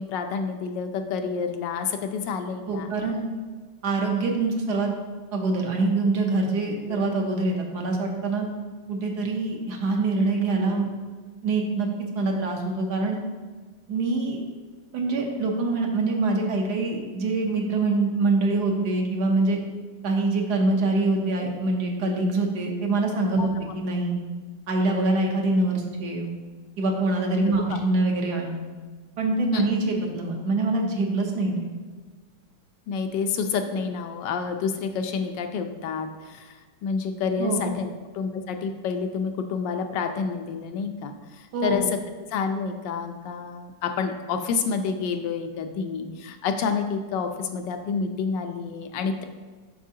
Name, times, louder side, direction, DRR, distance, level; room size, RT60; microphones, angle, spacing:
voice 1, 0.0-3.0 6.9-7.0 23.4-23.5 27.7-27.8 29.5-29.6 32.9-41.8 42.3-49.2, left 5 dB, 80° left, 6 dB, 1.3 m, -29 dB
voice 2, 2.7-3.2 3.8-4.9 5.3-8.5 8.9-10.9 11.4-11.9 12.1-13.2 13.9-14.4 14.9-19.6 20.0-24.2 24.7-26.3 26.8-28.5 29.2-31.7 37.4-37.7 41.5-41.8, right 3 dB, 65° right, 1 dB, 1.4 m, -24 dB
7.3 x 6.0 x 2.8 m, 1.4 s
omnidirectional pair, 2.0 m